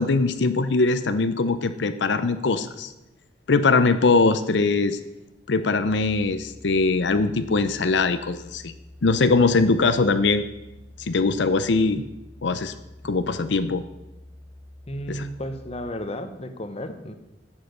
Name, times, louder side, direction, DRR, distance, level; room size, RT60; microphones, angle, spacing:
voice 1, 0.0-2.9 3.5-5.0 5.5-8.7 9.0-10.5 11.0-12.0 12.4-12.7 13.0-13.8 15.1-15.3, left 3 dB, 90° left, 11 dB, 0.6 m, -21 dB
sound 1, 5.9-15.9, left 1 dB, 15° right, 3.4 m, -47 dB
voice 2, 14.9-17.1, equal, 35° left, 8 dB, 0.9 m, -33 dB
10.5 x 7.5 x 6.6 m, 0.95 s
head